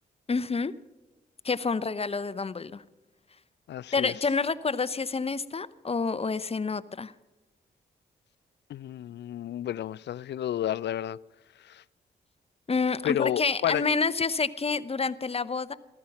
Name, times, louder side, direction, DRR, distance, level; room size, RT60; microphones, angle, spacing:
voice 1, 0.3-0.7 1.4-2.8 3.9-7.1 12.7-15.7, left 4 dB, 30° left, 0.7 m, -28 dB
voice 2, 3.7-4.1 8.7-11.2 11.6-11.8 13.0-13.9, left 11 dB, 55° left, 0.4 m, -31 dB
14.5 x 13.5 x 5.9 m
hypercardioid pair, 40°, 21 cm